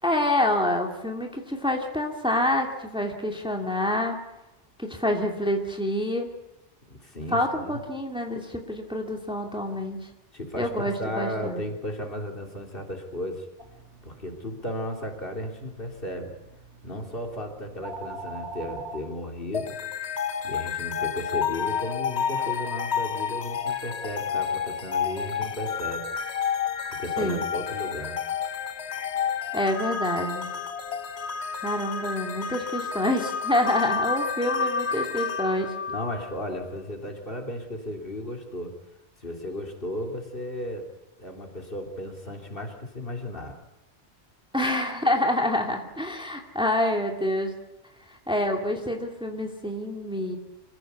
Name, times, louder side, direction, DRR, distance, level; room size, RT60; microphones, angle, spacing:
voice 1, 0.0-4.2 4.8-6.3 7.3-10.0 10.6-11.6 27.2-27.4 29.5-30.5 31.6-35.7 44.5-47.5 48.1-50.4, left 1 dB, 5° right, 2 dB, 2.5 m, -27 dB
voice 2, 6.9-7.8 10.3-13.5 14.0-16.3 16.8-19.8 20.4-26.1 26.9-28.2 35.9-38.7 39.2-40.9 41.2-43.6, left 1 dB, 50° left, 2 dB, 3.4 m, -35 dB
sound 1, 13.6-19.0, right 2 dB, 75° right, 3.3 m, -43 dB
sound 2, 19.5-36.7, left 7 dB, 70° left, 1.4 m, -30 dB
26.0 x 16.0 x 8.3 m, 0.95 s
omnidirectional pair, 1.2 m